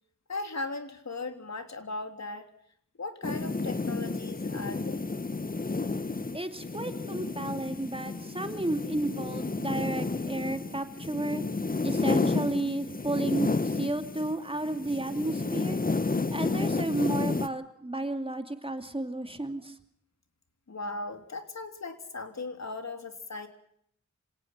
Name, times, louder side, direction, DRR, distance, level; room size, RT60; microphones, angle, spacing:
voice 1, 0.3-2.5 3.0-5.0 20.7-23.5, left 3 dB, 65° left, 7 dB, 3.4 m, -38 dB
sound 1, 3.2-14.3 14.6-17.5, left 3 dB, 30° left, 1.0 m, -31 dB
voice 2, 6.3-11.4 11.8-15.8 16.3-19.8, right 2 dB, 20° right, 7 dB, 2.5 m, -32 dB
27.0 x 18.5 x 6.0 m, 0.67 s
wide cardioid pair, 80°, 30 cm